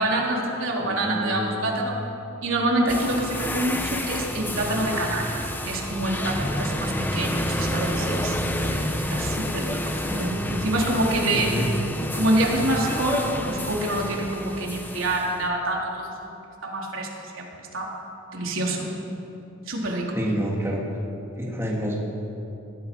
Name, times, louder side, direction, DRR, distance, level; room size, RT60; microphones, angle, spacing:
voice 1, 0.0-2.0 2.4-8.4 8.7-9.8 10.1-11.6 12.1-16.4 16.6-17.9 18.3-18.9 19.7-20.2, right 1 dB, 85° right, -1 dB, 3.7 m, -26 dB
voice 2, 0.8-1.7 10.1-10.7 11.3-11.7 20.1-20.8 21.4-22.0, equal, 15° right, -3 dB, 3.3 m, -28 dB
sound 1, 2.9-15.5, left 1 dB, 10° left, 1.3 m, -29 dB
25.5 x 19.5 x 5.5 m, 2.8 s
head